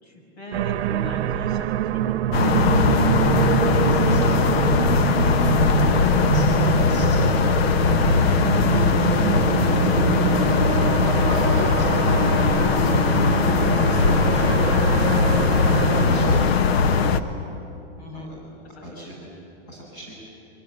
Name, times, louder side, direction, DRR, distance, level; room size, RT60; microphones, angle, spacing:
voice 1, 0.0-4.3 13.7-14.2 18.0-18.3 18.6-19.2, equal, 85° left, 3 dB, 6.5 m, -41 dB
sound 1, 0.5-16.5, right 11 dB, 80° right, 0.8 m, -25 dB
sound 2, 2.3-17.2, left 5 dB, 70° left, 1.3 m, -20 dB
voice 2, 4.0-4.6 6.3-7.4 7.9-8.3 8.8-10.3 10.6-13.4 13.9-15.5 15.8-16.4 16.7-17.3 18.1-18.4 18.8-19.2 19.7-20.1, equal, 40° left, -4 dB, 7.6 m, -38 dB
27.5 x 23.0 x 8.2 m, 2.7 s
supercardioid pair, 170°, 32 cm